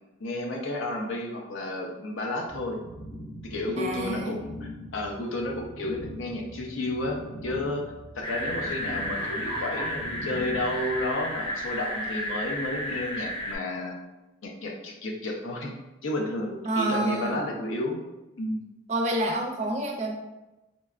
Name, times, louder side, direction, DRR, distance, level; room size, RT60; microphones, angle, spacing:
voice 1, 0.2-2.8 3.4-7.9 8.1-14.0 14.4-15.7 16.0-18.0 18.4-18.6, left 2 dB, 70° left, 1 dB, 0.5 m, -31 dB
sound 1, 2.5-11.0, equal, 90° left, 1.2 m, -43 dB
voice 2, 3.8-4.3 16.6-17.4 18.9-20.1, right 1 dB, 35° right, 0 dB, 0.4 m, -28 dB
sound 2, 8.2-13.6, equal, 25° left, 0.5 m, -32 dB
3.9 x 2.2 x 2.4 m, 1.0 s
head